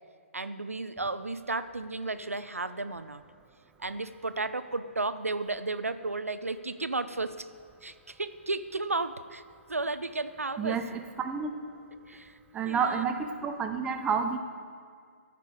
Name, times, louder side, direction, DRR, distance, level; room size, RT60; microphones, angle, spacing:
voice 1, 0.3-3.2 3.8-7.5 7.8-9.4 9.7-10.8 12.1-12.4 12.7-13.1, right 3 dB, 85° right, 12 dB, 0.4 m, -33 dB
voice 2, 10.6-11.5 12.5-14.4, right 6 dB, 10° right, 6 dB, 0.5 m, -30 dB
13.0 x 5.3 x 4.8 m, 2.1 s
figure-of-eight pair, 130°, 7 cm